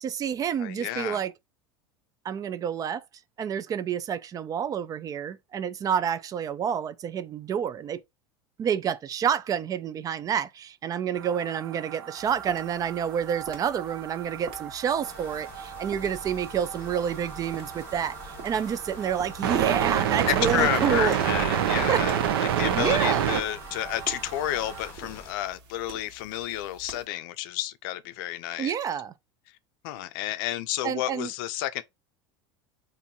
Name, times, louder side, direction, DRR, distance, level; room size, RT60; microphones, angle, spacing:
voice 1, 0.0-1.3 2.2-3.0 3.4-8.0 8.6-21.2 21.7-22.1 22.7-23.4 28.6-29.1 30.8-31.3, right 8 dB, 30° right, 0.3 m, -29 dB
voice 2, 0.6-1.2 20.3-28.7 29.5-29.6 29.8-31.8, left 14 dB, 70° left, 0.4 m, -31 dB
sound 1, 11.2-24.9, right 9 dB, 85° right, 0.6 m, -30 dB
sound 2, 12.2-27.1, right 4 dB, 50° right, 1.3 m, -48 dB
sound 3, 15.0-25.3, left 3 dB, 20° left, 1.2 m, -47 dB
3.8 x 2.6 x 2.8 m
supercardioid pair, 105°, 12 cm